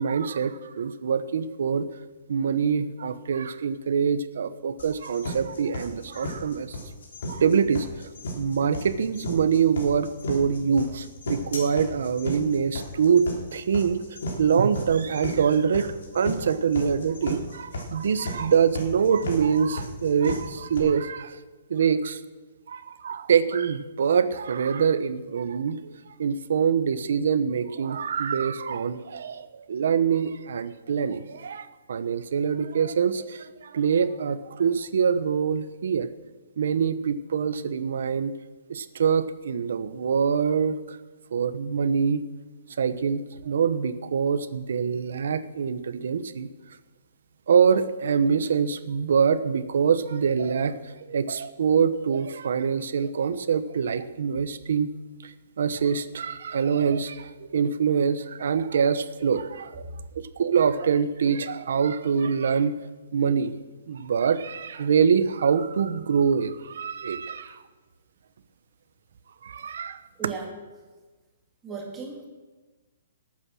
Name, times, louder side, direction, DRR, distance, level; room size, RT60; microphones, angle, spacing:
voice 1, 0.0-1.9 2.3-6.8 7.3-8.1 8.3-13.2 13.5-21.4 21.7-22.2 22.7-36.1 36.6-38.3 38.7-41.0 41.3-42.2 42.8-46.5 47.5-54.9 55.2-59.9 60.4-62.8 63.1-63.5 63.9-67.6 69.4-70.0, right 6 dB, 55° right, 12 dB, 1.0 m, -25 dB
sound 1, 4.8-20.8, left 1 dB, 60° left, 3.8 m, -34 dB
voice 2, 70.2-70.5 71.6-72.3, right 5 dB, 10° right, 0 dB, 2.1 m, -35 dB
19.5 x 8.7 x 6.4 m, 1.3 s
hypercardioid pair, 180°, 0 cm